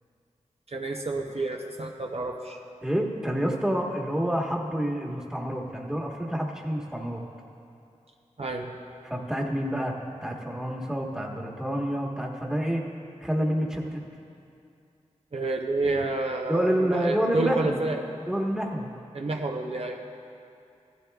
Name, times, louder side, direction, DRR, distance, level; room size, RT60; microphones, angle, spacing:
voice 1, 0.7-2.6 8.4-8.7 15.3-18.0 19.1-20.0, right 2 dB, 55° right, 1 dB, 0.7 m, -29 dB
voice 2, 2.8-7.2 9.0-9.9 10.2-12.8 13.2-14.0 16.5-17.8 18.3-18.9, equal, 5° right, -1 dB, 1.3 m, -28 dB
15.0 x 12.5 x 2.3 m, 2.6 s
wide cardioid pair, 55°, 12 cm